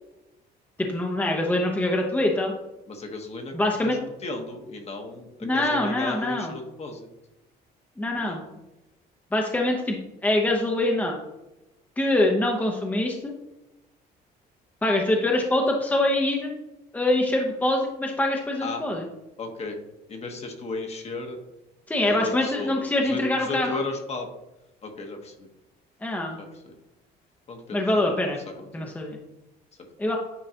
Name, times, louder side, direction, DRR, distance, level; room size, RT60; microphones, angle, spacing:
voice 1, 0.8-2.5 3.5-4.0 5.4-6.5 8.0-8.4 9.3-10.0 10.2-11.2 12.0-13.3 14.8-16.5 16.9-19.0 21.9-23.8 26.0-26.4 27.7-28.4 28.7-29.2 30.0-30.2, left 1 dB, 10° left, 1 dB, 0.9 m, -24 dB
voice 2, 2.9-7.1 8.3-8.4 18.6-18.9 19.4-19.8 20.1-21.4 22.0-24.3 24.8-25.5 26.4-26.7 27.5-28.3 28.6-28.9, left 3 dB, 40° left, 3 dB, 1.2 m, -35 dB
9.8 x 3.8 x 2.9 m, 0.94 s
cardioid pair, 110°, 17 cm